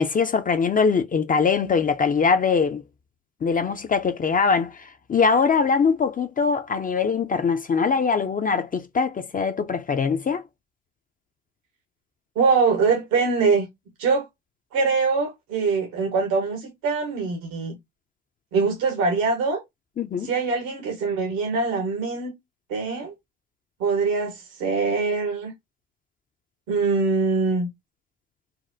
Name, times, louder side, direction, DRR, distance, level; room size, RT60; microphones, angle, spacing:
voice 1, 0.0-2.8 3.4-10.4 20.0-20.3, left 5 dB, 25° left, 0.4 m, -22 dB
voice 2, 12.3-13.7 14.0-14.3 14.7-17.8 18.5-19.6 20.2-22.3 22.7-23.1 23.8-25.5 26.7-27.7, right 4 dB, 80° right, 1.1 m, -23 dB
4.0 x 2.1 x 2.5 m
hypercardioid pair, 55°, 34 cm